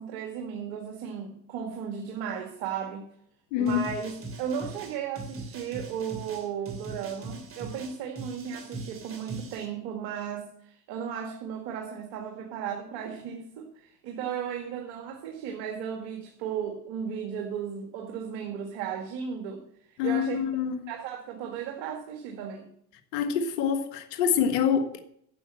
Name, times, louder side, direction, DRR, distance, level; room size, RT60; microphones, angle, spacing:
voice 1, 0.0-3.0 3.6-19.6 20.0-20.5 20.9-22.7, right 8 dB, 65° right, 2.1 m, -35 dB
voice 2, 3.5-3.9 20.0-20.9 23.1-25.0, left 8 dB, 85° left, 1.6 m, -26 dB
sound 1, 3.7-9.7, right 3 dB, 30° right, 3.1 m, -41 dB
11.0 x 7.4 x 7.8 m
supercardioid pair, 105°, 47 cm